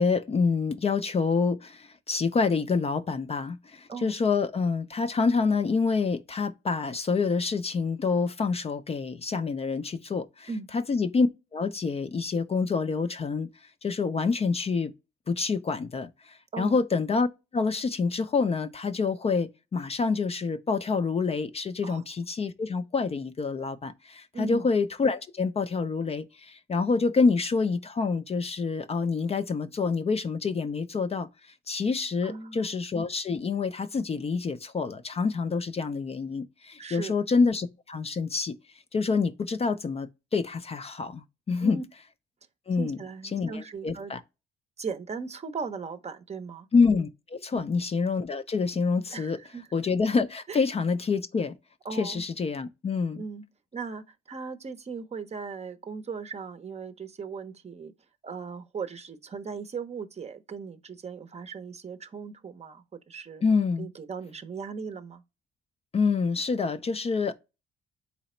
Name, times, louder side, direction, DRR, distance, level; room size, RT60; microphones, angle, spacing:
voice 1, 0.0-13.5 13.8-14.9 15.3-17.3 17.5-38.5 38.9-41.8 42.7-43.0 43.3-44.2 46.7-49.4 49.7-51.5 51.9-53.2 63.4-63.9 65.9-67.3, left 4 dB, 30° left, 0.4 m, -27 dB
voice 2, 24.3-24.7 32.2-32.7 36.8-37.2 41.6-41.8 42.8-44.1 44.8-46.7 47.5-47.7 49.1-49.7 50.5-50.6 51.8-52.2 53.2-53.4 53.7-57.9 58.2-63.4 63.8-65.2, right 5 dB, 35° right, 0.6 m, -38 dB
4.0 x 2.9 x 4.2 m
cardioid pair, 90°, 20 cm